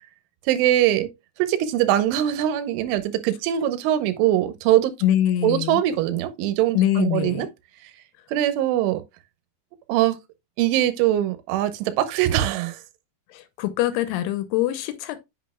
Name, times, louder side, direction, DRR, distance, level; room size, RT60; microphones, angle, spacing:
voice 1, 0.5-1.1 1.4-4.9 5.4-7.5 8.3-9.0 9.9-10.2 10.6-12.8, right 12 dB, 80° right, 3.2 m, -22 dB
voice 2, 5.0-5.8 6.7-7.5 13.3-15.2, left 12 dB, 85° left, 3.1 m, -23 dB
8.4 x 6.1 x 2.3 m
omnidirectional pair, 5.7 m